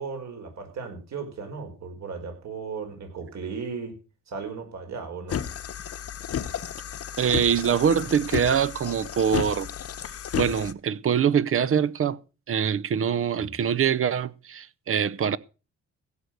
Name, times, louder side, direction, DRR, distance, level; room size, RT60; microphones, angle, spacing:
voice 1, 0.0-3.9 4.3-5.5 13.4-13.5, right 5 dB, 65° right, 4.8 m, -36 dB
sound 1, 5.3-10.7, left 9 dB, 50° left, 1.1 m, -33 dB
voice 2, 7.2-9.7 10.4-12.2 12.5-15.4, right 8 dB, 45° right, 0.7 m, -24 dB
16.0 x 6.6 x 6.5 m
cardioid pair, 90°, 30 cm